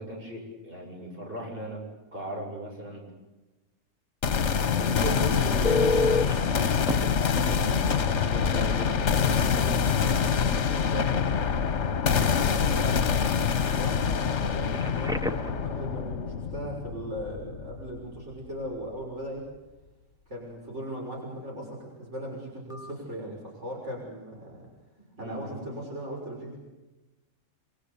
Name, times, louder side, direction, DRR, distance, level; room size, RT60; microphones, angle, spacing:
voice 1, 0.0-1.8 2.1-3.1 4.8-10.0 10.6-11.4 25.2-25.7, equal, 45° right, 0 dB, 8.1 m, -37 dB
sound 1, 4.2-18.2, left 6 dB, 65° left, 1.4 m, -26 dB
voice 2, 4.8-5.2 12.3-19.5 20.3-24.7 25.2-26.6, equal, 60° right, -2 dB, 6.8 m, -38 dB
Telephone, 5.6-6.3 6.9-7.0 8.7-8.9 9.3-9.5 14.7-15.6 22.7-22.9, left 2 dB, 5° right, 0.9 m, -27 dB
27.5 x 26.5 x 7.0 m, 1.1 s
omnidirectional pair, 1.3 m